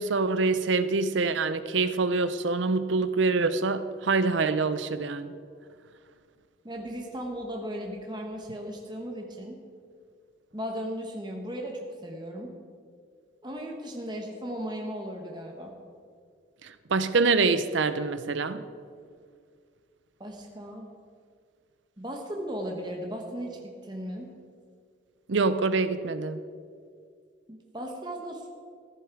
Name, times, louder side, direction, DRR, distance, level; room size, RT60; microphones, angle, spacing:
voice 1, 0.0-5.4 16.6-18.6 25.3-26.4, right 3 dB, 70° right, 12 dB, 0.6 m, -25 dB
voice 2, 6.6-9.6 10.5-12.5 13.4-15.7 20.2-20.9 22.0-24.3 27.5-28.5, equal, 20° right, 1 dB, 1.1 m, -36 dB
14.5 x 10.5 x 4.7 m, 2.1 s
head